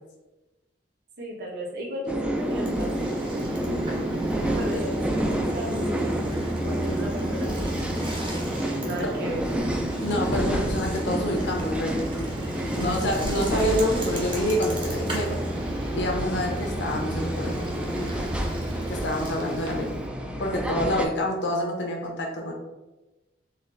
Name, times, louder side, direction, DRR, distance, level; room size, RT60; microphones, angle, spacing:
voice 1, 1.2-3.1 4.3-6.1 6.6-7.8 8.8-9.4, equal, 60° right, -2 dB, 1.0 m, -35 dB
sound 1, 2.1-21.1, right 1 dB, 5° right, 0.3 m, -30 dB
Bicycle, 2.4-20.0, right 1 dB, 30° right, 0.8 m, -33 dB
voice 2, 10.0-12.1 12.8-15.4 15.9-17.5 18.9-20.0 20.4-22.5, equal, 70° left, 1 dB, 0.8 m, -27 dB
3.8 x 2.5 x 3.2 m, 1.1 s
head